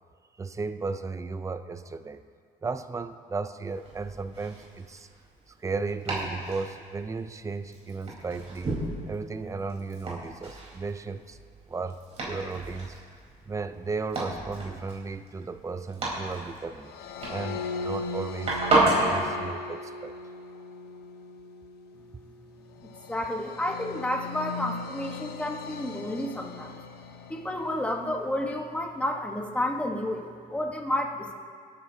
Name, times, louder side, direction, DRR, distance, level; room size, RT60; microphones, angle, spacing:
voice 1, 0.4-2.2 2.6-5.1 5.5-8.8 9.1-11.4 11.7-13.0 13.4-16.9 17.3-20.1 22.1-22.2, right 4 dB, 20° right, 11 dB, 0.5 m, -35 dB
Domestic sounds home sounds, 3.6-19.2, right 2 dB, 40° right, 4.1 m, -33 dB
sound 1, 16.8-28.2, left 4 dB, 70° left, 0.9 m, -39 dB
voice 2, 23.1-26.8 27.3-31.3, left 1 dB, 5° left, 2 dB, 1.3 m, -31 dB
25.5 x 9.3 x 2.8 m, 2.1 s
cardioid pair, 110°, 17 cm